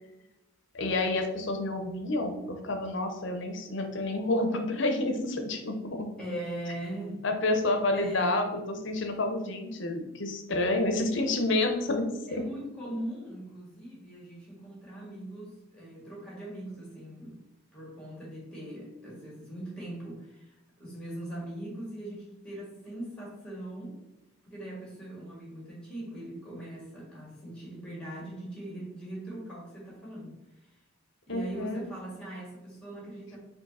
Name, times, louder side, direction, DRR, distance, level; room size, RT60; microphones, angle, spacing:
voice 1, 0.7-6.1 7.2-12.1 12.3-12.4 31.3-31.8, left 2 dB, 55° left, 5 dB, 0.6 m, -29 dB
voice 2, 6.2-7.2 7.9-8.4 12.3-17.4 17.7-24.0 24.5-30.8 31.3-33.4, right 1 dB, 5° left, -4 dB, 1.7 m, -40 dB
4.7 x 2.7 x 4.1 m, 0.94 s
head